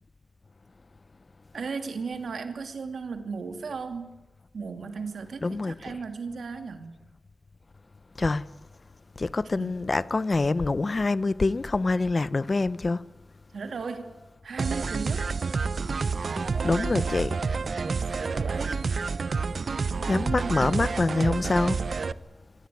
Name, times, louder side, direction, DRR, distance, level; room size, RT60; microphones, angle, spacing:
voice 1, 1.5-4.2 4.5-6.9 9.6-9.9 13.5-15.3 16.5-17.0 17.8-18.9 19.7-20.9, right 5 dB, 85° right, 2.6 m, -36 dB
voice 2, 5.4-6.0 8.2-8.5 9.2-13.0 16.6-17.4 20.1-21.8, left 3 dB, 40° left, 0.7 m, -25 dB
sound 1, 14.6-22.1, right 4 dB, 60° right, 0.8 m, -29 dB
25.0 x 18.0 x 9.4 m
wide cardioid pair, 100°, 0 cm